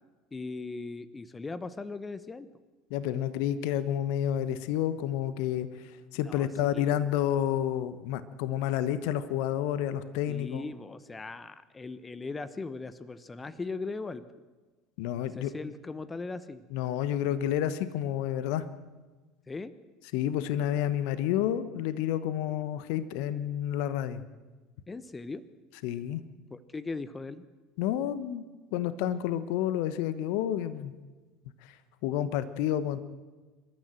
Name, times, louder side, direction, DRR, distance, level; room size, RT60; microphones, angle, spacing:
voice 1, 0.3-2.5 6.2-6.9 10.3-14.2 15.2-16.6 19.5-19.7 24.9-25.4 26.5-27.4, left 3 dB, 20° left, 14 dB, 1.0 m, -39 dB
voice 2, 2.9-10.6 15.0-15.5 16.7-18.7 20.1-24.2 25.8-26.2 27.8-28.4 28.7-30.9 31.6-31.8 32.0-33.0, left 11 dB, 60° left, 13 dB, 1.1 m, -30 dB
26.5 x 13.0 x 7.8 m, 1.3 s
figure-of-eight pair, 70°, 0 cm